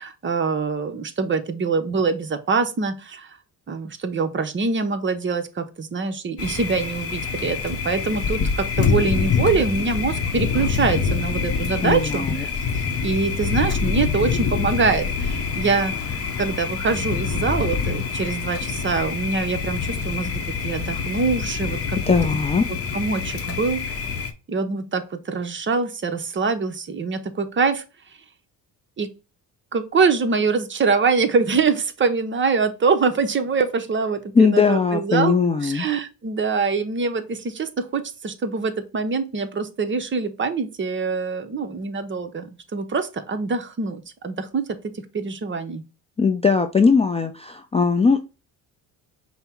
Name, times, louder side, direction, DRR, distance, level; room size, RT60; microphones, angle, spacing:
voice 1, 0.0-3.4 3.7-12.5 13.0-22.4 22.9-23.8 24.5-27.8 29.0-29.1 29.7-35.3 35.6-44.7 45.1-45.8, right 4 dB, 30° right, 0.7 m, -24 dB
Thunder, 6.4-24.3, left 5 dB, 40° left, 0.7 m, -26 dB
voice 2, 11.8-12.4 22.1-22.6 34.3-35.9 46.2-48.2, left 5 dB, 15° left, 0.3 m, -19 dB
5.4 x 2.0 x 4.3 m
cardioid pair, 95°, 38 cm